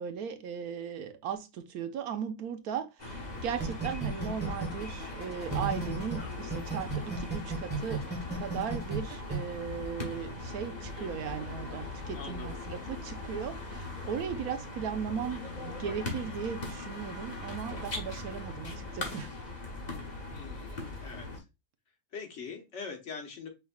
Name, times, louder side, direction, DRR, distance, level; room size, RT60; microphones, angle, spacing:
voice 1, 0.0-8.0 8.3-19.3, right 7 dB, 85° right, 1.2 m, -37 dB
sound 1, 3.0-21.4, left 2 dB, 30° left, 1.2 m, -40 dB
sound 2, 3.6-6.2 6.5-9.4, right 5 dB, 10° right, 1.1 m, -34 dB
voice 2, 12.1-12.6 20.3-21.4 22.1-23.5, left 5 dB, 55° left, 1.4 m, -43 dB
5.4 x 3.6 x 2.3 m
omnidirectional pair, 1.5 m